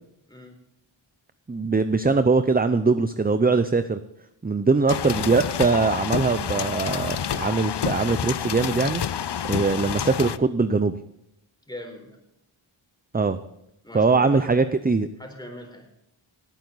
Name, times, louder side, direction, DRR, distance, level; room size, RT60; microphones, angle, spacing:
voice 1, 1.5-4.0 4.4-9.0 9.5-11.0 13.1-13.4 13.9-15.1, right 4 dB, 20° right, 11 dB, 0.6 m, -22 dB
sound 1, 4.9-10.4, left 9 dB, 55° left, 0.6 m, -28 dB
voice 2, 11.7-12.2 13.8-14.7 15.2-15.9, left 1 dB, 10° left, 3 dB, 4.1 m, -41 dB
18.0 x 9.2 x 4.1 m, 0.79 s
wide cardioid pair, 45°, 49 cm